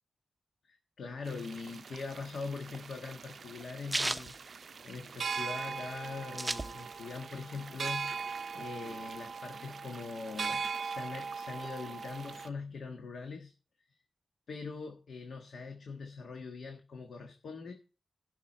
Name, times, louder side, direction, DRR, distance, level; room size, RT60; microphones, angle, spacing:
voice 1, 0.6-8.2 8.5-13.5 13.9-14.0 14.5-17.7, left 4 dB, 80° left, 1.4 m, -42 dB
sound 1, 1.2-12.5, right 5 dB, 60° right, 0.4 m, -40 dB
sound 2, 2.2-5.3 5.7-5.8 5.9-7.2 7.6-8.7, right 1 dB, 10° right, 0.6 m, -36 dB
16.5 x 5.9 x 4.4 m
wide cardioid pair, 165°, 0 cm